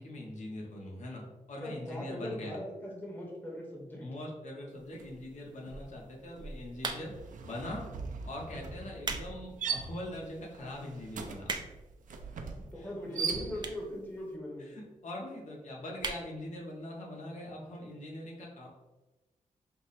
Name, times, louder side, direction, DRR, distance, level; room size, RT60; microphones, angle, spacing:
voice 1, 0.0-2.6 4.0-7.1 7.4-7.9 8.2-11.6 12.8-13.3 14.6-18.7, left 1 dB, 65° left, -1 dB, 0.9 m, -42 dB
voice 2, 1.6-4.1 12.7-14.7, left 1 dB, 15° left, -3 dB, 1.0 m, -40 dB
sound 1, 4.9-5.2 5.5-14.0, right 5 dB, 85° right, 0.5 m, -40 dB
sound 2, 6.8-7.3 8.1-8.3 8.8-9.3 9.7-9.8 10.5-10.6 10.7-10.8 11.1-11.9 12.7-12.8 13.6-13.9 14.2-14.3 14.5-14.6 14.8-14.9 15.2-15.5 16.0-16.3 16.7-16.8 16.9-17.0, right 4 dB, 35° right, 0.4 m, -37 dB
5.6 x 2.1 x 4.0 m, 1.1 s
wide cardioid pair, 165°, 13 cm